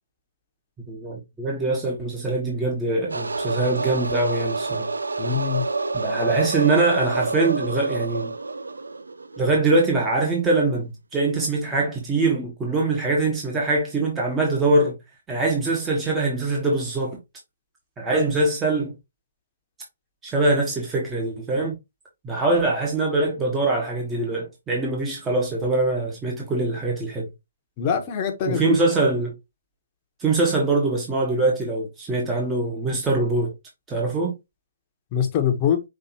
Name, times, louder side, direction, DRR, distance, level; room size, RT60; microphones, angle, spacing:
voice 1, 0.9-4.9 5.9-8.3 9.4-15.0 15.3-17.2 18.0-18.9 20.2-21.7 22.2-27.3 28.5-29.3 30.2-33.5 33.9-34.3, right 2 dB, 10° right, 1.3 m, -23 dB
sound 1, 3.1-9.7, right 3 dB, 85° right, 0.4 m, -28 dB
voice 2, 5.2-5.6 27.8-28.6 35.1-35.8, left 8 dB, 30° left, 1.1 m, -23 dB
5.6 x 2.8 x 2.8 m
hypercardioid pair, 145°, 0 cm